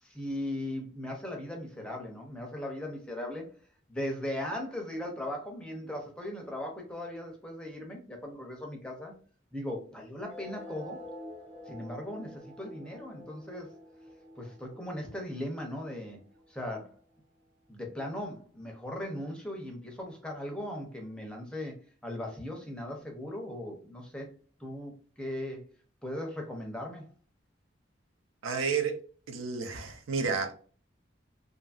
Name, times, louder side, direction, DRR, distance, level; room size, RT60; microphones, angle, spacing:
voice 1, 0.0-3.5 3.9-9.1 9.5-11.0 11.7-13.7 14.4-16.2 16.5-17.0 17.7-21.8 22.0-24.3 24.6-25.6 26.0-27.1, left 1 dB, 5° left, 0.5 m, -38 dB
sound 1, 10.2-17.2, left 1 dB, 40° right, 1.0 m, -48 dB
voice 2, 28.4-30.5, right 5 dB, 90° right, 0.5 m, -31 dB
2.8 x 2.5 x 2.3 m
head